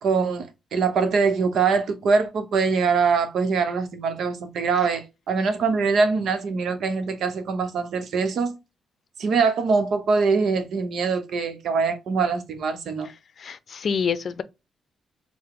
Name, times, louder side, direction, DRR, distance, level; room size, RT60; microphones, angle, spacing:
voice 1, 0.0-8.6 9.2-13.1, right 5 dB, 70° right, 0.8 m, -23 dB
voice 2, 13.4-14.4, left 6 dB, 60° left, 0.5 m, -27 dB
4.6 x 2.1 x 3.7 m
supercardioid pair, 60°, 0 cm